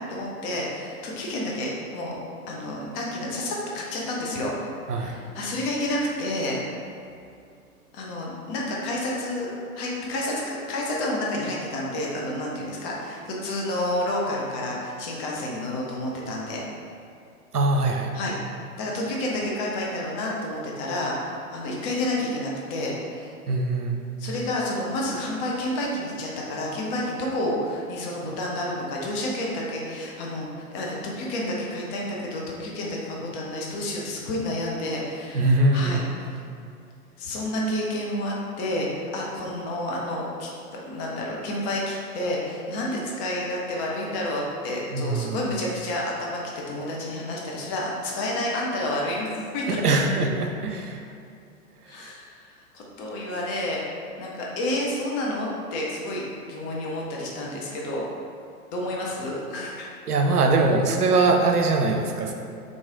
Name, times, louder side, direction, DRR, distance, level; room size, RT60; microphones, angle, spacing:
voice 1, 0.1-2.2 2.5-4.5 5.0-6.6 7.9-9.5 9.8-16.7 18.1-18.3 18.8-23.3 24.2-36.4 37.2-40.5 40.9-46.4 46.7-49.8 51.9-52.5 52.7-53.8 54.2-58.0 58.7-59.9, left 1 dB, 25° left, -3 dB, 0.6 m, -30 dB
voice 2, 17.5-18.1 23.5-24.0 35.3-36.0 44.9-45.4 49.7-51.0 60.1-62.3, right 3 dB, 85° right, 3 dB, 0.7 m, -22 dB
3.8 x 3.1 x 3.7 m, 2.5 s
figure-of-eight pair, 105°, 45 cm